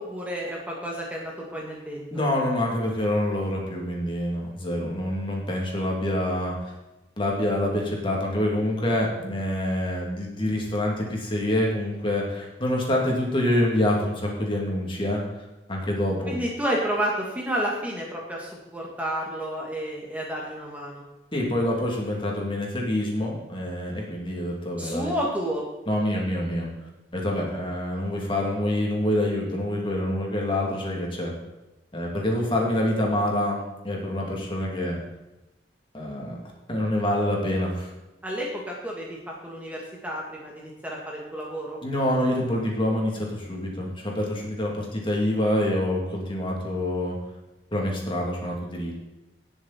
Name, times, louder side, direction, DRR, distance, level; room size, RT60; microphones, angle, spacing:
voice 1, 0.0-2.0 16.3-21.0 24.8-25.6 38.2-41.8, equal, 10° right, -2 dB, 1.7 m, -31 dB
voice 2, 2.1-6.7 7.2-15.2 15.7-16.4 21.3-25.1 25.9-26.7 27.1-31.3 31.9-33.6 33.8-35.0 35.9-36.4 36.7-37.9 41.8-47.2 47.7-48.9, left 1 dB, 30° left, -2 dB, 2.8 m, -26 dB
18.0 x 7.1 x 4.4 m, 0.99 s
head